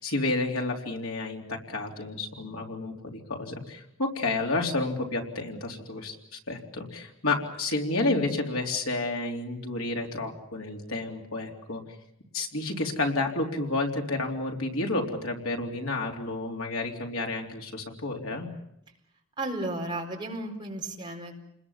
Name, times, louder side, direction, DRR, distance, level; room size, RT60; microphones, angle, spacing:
voice 1, 0.0-11.8 12.3-18.5, left 2 dB, 80° left, 1 dB, 3.7 m, -30 dB
voice 2, 19.4-21.4, right 2 dB, 20° right, 0 dB, 4.5 m, -34 dB
29.5 x 21.0 x 7.4 m, 0.77 s
head